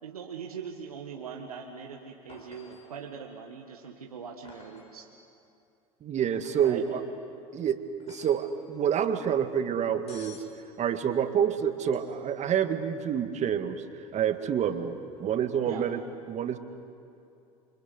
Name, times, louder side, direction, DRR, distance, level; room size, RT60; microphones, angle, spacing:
voice 1, 0.0-5.1 6.6-6.8 15.7-15.9, right 6 dB, 85° right, 1 dB, 1.7 m, -41 dB
sound 1, 2.3-2.9 4.4-4.9 6.3-6.8 8.0-8.5 10.1-10.5 11.8-12.3 15.1-15.2, left 4 dB, 35° left, 6.0 m, -52 dB
voice 2, 6.0-7.0 7.5-7.8 8.1-10.4 10.8-16.0 16.3-16.6, right 8 dB, 40° right, 8 dB, 2.0 m, -28 dB
29.0 x 25.0 x 8.2 m, 2.7 s
hypercardioid pair, 80°, 18 cm